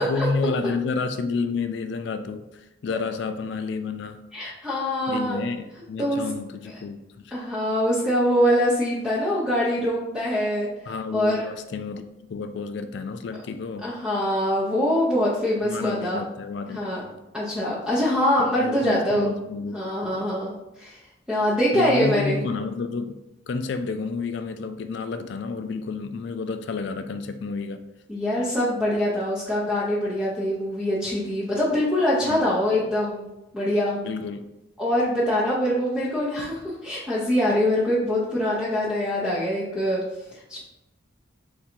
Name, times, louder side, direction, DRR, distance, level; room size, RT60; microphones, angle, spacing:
voice 1, 0.0-4.2 5.1-7.4 10.9-13.9 15.6-17.2 18.4-20.3 21.7-27.8 32.3-32.4 34.0-34.5, left 4 dB, 55° left, 0.3 m, -30 dB
voice 2, 4.3-5.4 6.0-6.2 7.3-10.7 11.1-11.4 13.8-16.2 16.7-17.0 17.3-19.3 19.7-21.0 21.3-22.4 28.1-33.3 33.5-34.0 34.8-40.0 40.3-40.6, equal, 5° right, 0.7 m, -24 dB
3.7 x 2.7 x 4.4 m
head